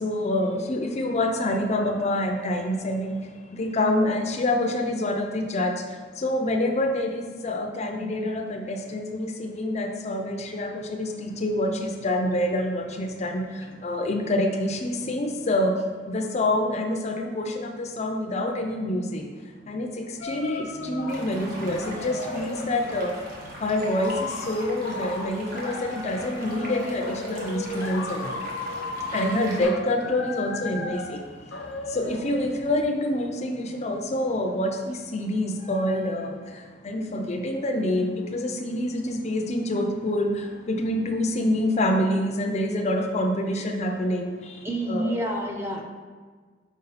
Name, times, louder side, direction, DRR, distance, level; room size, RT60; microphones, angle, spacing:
voice 1, 0.0-3.2 3.6-5.7 6.2-13.4 13.8-15.7 16.1-19.2 19.7-19.9 20.2-23.1 23.6-24.1 24.5-28.3 29.1-31.2 31.9-36.3 36.8-40.3 40.7-44.3 44.9-45.2, left 1 dB, 40° left, 3 dB, 0.5 m, -26 dB
sound 1, 20.2-22.7 23.3-32.8, left 3 dB, 85° left, 0.7 m, -36 dB
Stream, 21.1-29.6, right 1 dB, 55° right, 1.3 m, -40 dB
voice 2, 44.6-45.8, right 1 dB, 15° right, 1 dB, 0.6 m, -28 dB
5.4 x 4.7 x 4.0 m, 1.5 s
head